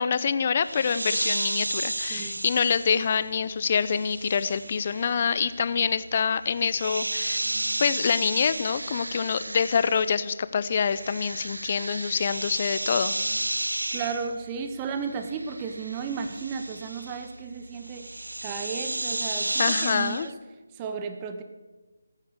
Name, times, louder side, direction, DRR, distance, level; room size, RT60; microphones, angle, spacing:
voice 1, 0.0-7.5 7.8-13.1 19.6-20.3, left 6 dB, 35° left, 15 dB, 0.6 m, -26 dB
sound 1, 0.6-10.3 10.6-20.3, right 2 dB, 75° right, 0.4 m, -33 dB
voice 2, 1.7-2.4 13.9-20.4 20.7-21.4, right 6 dB, 20° right, 7 dB, 0.8 m, -34 dB
16.0 x 9.1 x 6.7 m, 1.2 s
figure-of-eight pair, 155°, 0 cm